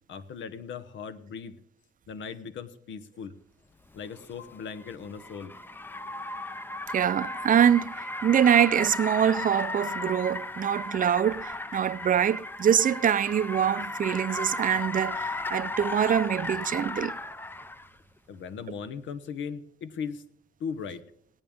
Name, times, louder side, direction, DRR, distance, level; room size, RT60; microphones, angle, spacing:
voice 1, 0.1-1.6 2.1-3.3 3.9-5.5 18.3-20.2 20.6-21.0, left 6 dB, 70° left, 1.0 m, -38 dB
Car, 4.0-17.9, left 2 dB, 10° left, 0.5 m, -35 dB
voice 2, 6.9-17.1, right 9 dB, 45° right, 0.5 m, -24 dB
18.5 x 8.9 x 3.5 m
cardioid pair, 90°, 20 cm